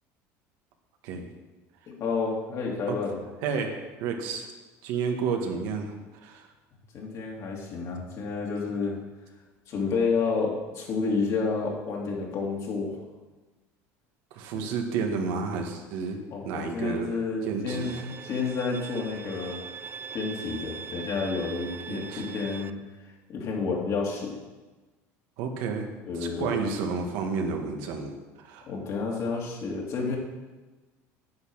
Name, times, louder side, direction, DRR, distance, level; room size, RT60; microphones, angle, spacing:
voice 1, 1.9-3.2 6.9-9.0 9.7-13.0 14.5-14.6 16.3-19.6 20.1-22.7 23.3-24.4 26.1-26.5 28.7-30.2, left 4 dB, 50° left, -2 dB, 3.1 m, -30 dB
voice 2, 3.4-4.5 4.8-5.9 6.2-6.5 14.3-16.2 16.4-17.1 17.5-18.1 21.9-22.2 25.4-25.9 26.2-28.6, right 5 dB, 75° right, 3 dB, 1.8 m, -31 dB
Bowed string instrument, 17.7-22.7, right 6 dB, 30° right, 0.5 m, -41 dB
9.5 x 8.6 x 6.5 m, 1.2 s
supercardioid pair, 110°, 7 cm